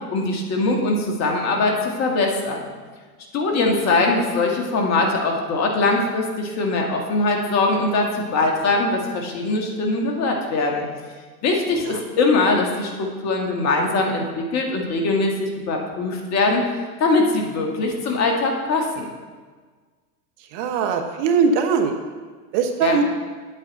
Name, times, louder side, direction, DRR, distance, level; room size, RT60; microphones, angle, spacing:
voice 1, 0.1-2.7 3.3-10.9 11.4-16.6 17.0-19.1 22.8-23.0, left 3 dB, 35° left, 1 dB, 1.7 m, -22 dB
voice 2, 20.5-22.0 22.5-23.0, right 5 dB, 45° right, 5 dB, 1.0 m, -21 dB
9.6 x 8.3 x 4.1 m, 1.5 s
hypercardioid pair, 110°, 48 cm